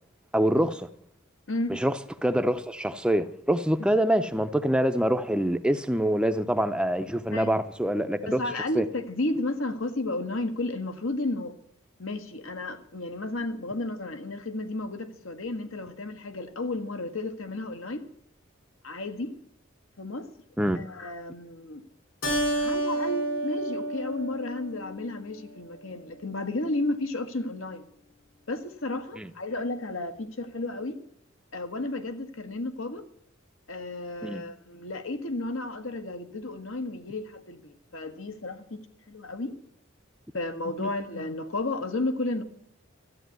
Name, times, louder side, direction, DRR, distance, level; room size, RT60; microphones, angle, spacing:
voice 1, 0.3-0.9 1.7-8.4 8.7-8.9 20.6-20.8 29.2-29.3 34.2-34.4 40.8-40.9, right 1 dB, 5° right, 0.5 m, -25 dB
voice 2, 8.3-11.5 12.0-18.0 18.8-19.3 20.0-20.3 20.7-21.8 22.5-27.8 28.5-31.0 31.5-33.0 33.7-38.8 39.1-39.5 40.3-42.4, left 2 dB, 80° left, 1.5 m, -33 dB
Keyboard (musical), 22.2-25.1, right 1 dB, 65° left, 4.2 m, -29 dB
13.5 x 8.5 x 9.4 m
head